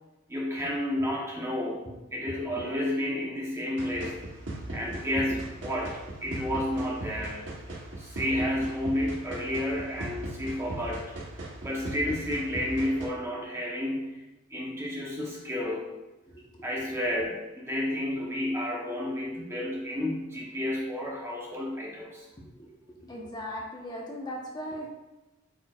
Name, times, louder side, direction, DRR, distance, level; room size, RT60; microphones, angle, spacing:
voice 1, 0.3-1.8 2.1-4.2 4.7-7.5 8.0-11.0 11.6-15.9 16.6-22.3, left 1 dB, 15° right, -3 dB, 0.9 m, -31 dB
sound 1, 3.8-13.1, right 2 dB, 65° right, 1.2 m, -39 dB
voice 2, 5.0-5.4 8.0-8.1 16.3-16.7 22.4-24.9, equal, 20° left, -2 dB, 1.0 m, -40 dB
8.4 x 4.6 x 2.4 m, 1.0 s
head